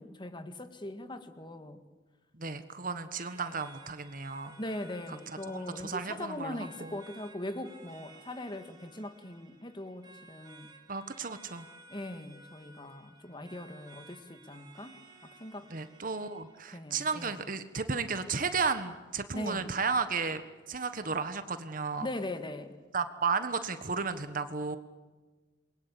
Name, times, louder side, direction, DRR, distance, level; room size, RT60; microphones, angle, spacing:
voice 1, 0.0-1.8 4.6-10.7 11.9-15.0 15.4-15.7 16.7-17.4 19.3-19.8 22.0-22.8, left 1 dB, 25° left, 9 dB, 1.9 m, -40 dB
voice 2, 2.3-4.6 5.5-7.0 10.9-11.7 15.7-20.4 20.7-22.1 22.9-24.8, right 5 dB, 45° right, 10 dB, 1.4 m, -33 dB
sound 1, 3.1-16.7, right 2 dB, 25° right, 3.4 m, -56 dB
28.0 x 22.5 x 8.6 m, 1.3 s
head